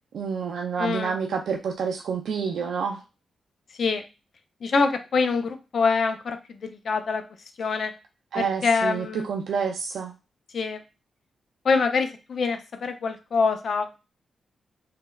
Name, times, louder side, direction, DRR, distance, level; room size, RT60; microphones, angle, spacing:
voice 1, 0.1-3.0 8.3-10.1, right 6 dB, 85° right, 1 dB, 0.4 m, -28 dB
voice 2, 0.8-1.2 3.8-4.0 4.6-7.2 7.6-7.9 8.4-9.3 10.5-10.8 11.6-13.9, left 4 dB, 55° left, 7 dB, 0.5 m, -25 dB
3.3 x 3.1 x 2.3 m, 0.29 s
wide cardioid pair, 120°, 0 cm